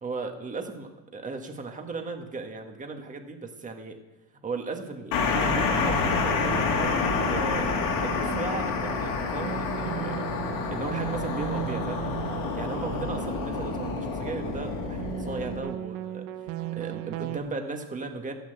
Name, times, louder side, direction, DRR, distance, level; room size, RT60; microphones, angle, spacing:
voice 1, 0.0-4.0 4.4-7.0 7.3-7.7 8.0-10.3 10.7-12.0 12.5-18.3, right 3 dB, 15° right, 4 dB, 1.6 m, -36 dB
sound 1, 5.1-15.6, left 5 dB, 65° left, 3.3 m, -28 dB
sound 2, 5.3-17.4, right 15 dB, 60° right, 1.2 m, -36 dB
14.5 x 10.5 x 8.0 m, 1.0 s
cardioid pair, 160°, 48 cm